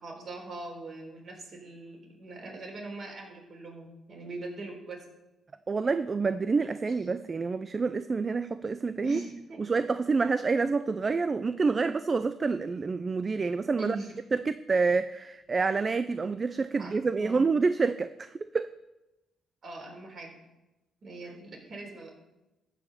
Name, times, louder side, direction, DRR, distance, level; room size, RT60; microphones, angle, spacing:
voice 1, 0.0-5.0 9.0-9.6 13.8-14.1 16.8-17.5 19.6-20.4 21.0-22.1, right 2 dB, 50° right, 0 dB, 3.8 m, -41 dB
voice 2, 5.7-9.2 9.6-14.0 14.3-18.7, right 4 dB, 35° right, 12 dB, 0.4 m, -28 dB
14.0 x 5.0 x 6.7 m, 0.98 s
cardioid pair, 90°, 0 cm